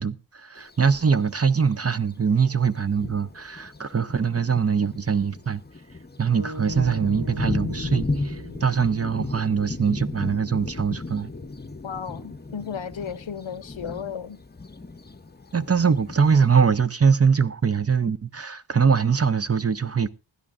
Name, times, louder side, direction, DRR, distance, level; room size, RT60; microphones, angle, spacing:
voice 1, 0.0-5.6 6.2-11.3 15.5-20.1, right 6 dB, 30° right, 0.6 m, -22 dB
Thunder, 0.6-0.7 1.7-1.8 2.3-2.4 2.8-16.6, left 3 dB, 20° left, 0.7 m, -35 dB
sound 1, 6.3-10.6, right 1 dB, 60° right, 1.3 m, -40 dB
voice 2, 11.8-14.4, left 7 dB, 80° left, 0.8 m, -34 dB
19.5 x 12.5 x 2.5 m
wide cardioid pair, 70°, 46 cm